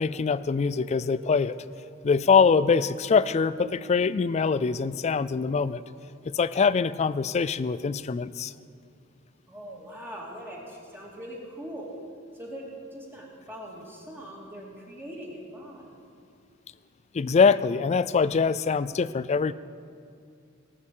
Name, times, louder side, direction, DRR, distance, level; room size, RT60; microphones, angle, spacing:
voice 1, 0.0-1.6 2.0-5.8 6.3-8.5 17.1-19.5, left 5 dB, 30° left, 16 dB, 0.3 m, -23 dB
Guitar, 0.6-7.3, right 1 dB, 50° right, 4.1 m, -49 dB
voice 2, 9.5-11.9 12.3-15.9, equal, 10° right, -4 dB, 2.1 m, -41 dB
18.5 x 6.7 x 7.2 m, 2.4 s
head